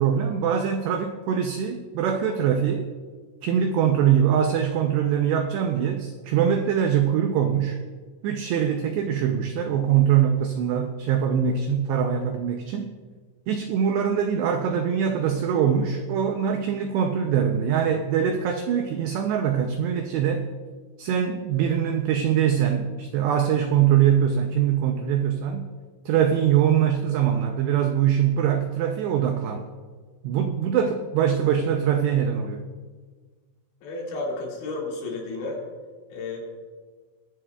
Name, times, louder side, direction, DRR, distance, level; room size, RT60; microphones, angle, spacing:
voice 1, 0.0-2.8 3.4-7.8 8.2-12.9 13.5-20.4 21.0-25.7 26.1-29.6 30.2-32.6, right 8 dB, 85° right, 5 dB, 2.4 m, -23 dB
voice 2, 33.8-35.6 36.1-36.4, left 3 dB, 70° left, -2 dB, 4.2 m, -32 dB
22.5 x 9.9 x 2.3 m, 1.5 s
omnidirectional pair, 5.6 m